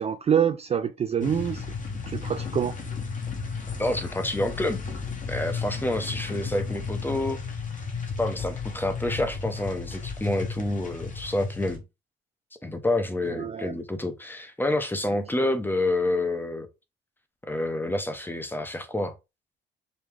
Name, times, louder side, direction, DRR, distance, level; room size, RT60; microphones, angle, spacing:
voice 1, 0.0-1.6 2.1-2.8 13.3-13.7, right 8 dB, 30° right, 0.4 m, -26 dB
sound 1, 1.2-11.8, left 5 dB, 40° left, 1.2 m, -34 dB
voice 2, 3.8-4.8 5.3-7.4 8.2-11.8 12.6-16.7 17.4-19.1, left 1 dB, 10° left, 0.8 m, -28 dB
5.2 x 2.2 x 3.3 m
cardioid pair, 90°, 20 cm